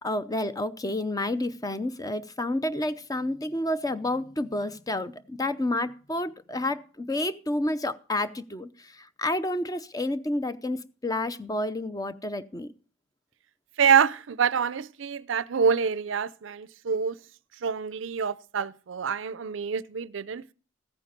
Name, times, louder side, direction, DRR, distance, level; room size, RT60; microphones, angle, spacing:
voice 1, 0.0-8.7 9.2-12.7, left 1 dB, 20° left, 0.6 m, -30 dB
voice 2, 13.8-17.2 17.6-20.5, right 6 dB, 75° right, 0.5 m, -26 dB
15.0 x 9.1 x 5.1 m
head